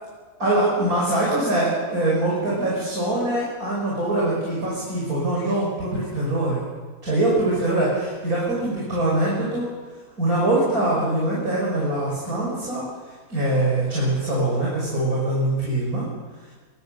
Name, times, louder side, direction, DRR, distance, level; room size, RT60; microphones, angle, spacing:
voice 1, 0.4-6.6 7.0-9.7 10.2-12.8 13.3-16.0, right 1 dB, 75° right, -5 dB, 6.6 m, -23 dB
23.5 x 23.5 x 6.8 m, 1.4 s
omnidirectional pair, 1.6 m